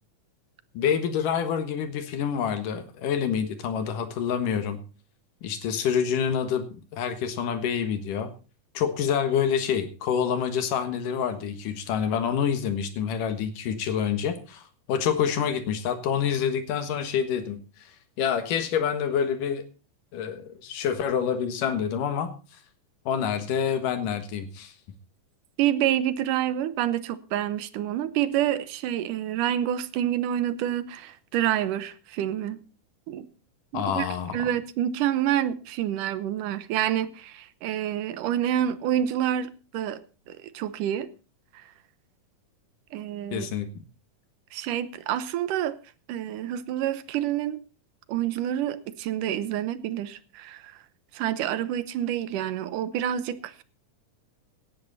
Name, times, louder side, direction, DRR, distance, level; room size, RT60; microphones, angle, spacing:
voice 1, 0.7-4.8 5.4-8.3 8.7-19.6 20.1-22.3 23.1-24.7 33.7-34.5 43.3-43.8, left 8 dB, 75° left, 3.0 m, -27 dB
voice 2, 25.6-32.6 33.1-33.3 33.7-34.1 34.3-40.0 40.3-41.1 41.5-41.6 42.9-43.5 44.5-45.8 46.1-47.6 48.1-50.8 51.1-53.6, right 11 dB, 75° right, 2.4 m, -28 dB
17.5 x 11.0 x 4.1 m
omnidirectional pair, 3.8 m